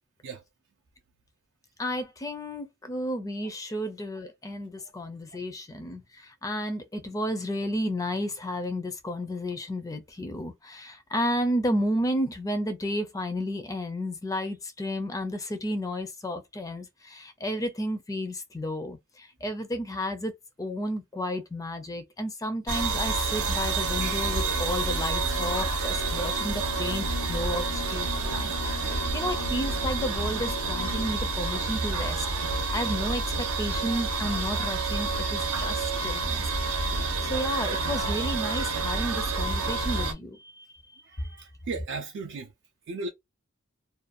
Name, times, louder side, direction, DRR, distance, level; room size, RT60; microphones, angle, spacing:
voice 1, 1.8-20.3 20.6-36.5 37.2-41.0, equal, 15° left, 0.4 m, -32 dB
sound 1, 22.7-40.1, right 3 dB, 85° right, 0.7 m, -29 dB
sound 2, 23.8-31.1, left 6 dB, 90° left, 0.4 m, -42 dB
voice 2, 41.0-42.5 42.9-43.1, right 3 dB, 60° right, 0.4 m, -36 dB
2.5 x 2.2 x 2.3 m
head